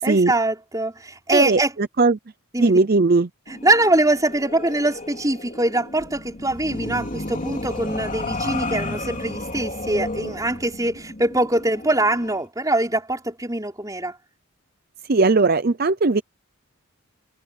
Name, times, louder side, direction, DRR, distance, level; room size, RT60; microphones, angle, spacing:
voice 1, 0.0-1.7 2.5-2.8 3.5-14.2, right 2 dB, 15° right, 5.4 m, -23 dB
voice 2, 2.6-3.3 15.1-16.2, right 3 dB, 45° right, 0.6 m, -18 dB
sound 1, 3.5-12.4, left 2 dB, 35° left, 3.1 m, -32 dB
head